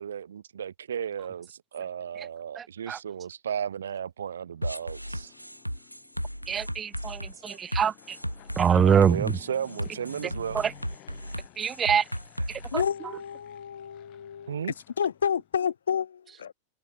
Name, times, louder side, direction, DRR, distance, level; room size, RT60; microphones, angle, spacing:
voice 1, 0.0-5.3 7.5-7.6 8.7-10.6 14.5-14.7, right 8 dB, 65° right, 3.2 m, -34 dB
voice 2, 2.6-3.0 6.5-6.9 7.4-8.2 8.6-9.2 10.5-10.7 11.6-12.0 12.5-12.8, right 7 dB, 20° right, 0.4 m, -24 dB
Fixed-wing aircraft airplane, 4.5-15.6, left 23 dB, 40° left, 7.5 m, -54 dB
sound 1, 4.6-12.9, equal, 90° right, 2.4 m, -35 dB
voice 3, 12.7-16.5, left 7 dB, 70° left, 1.9 m, -30 dB
figure-of-eight pair, 90°, 0 cm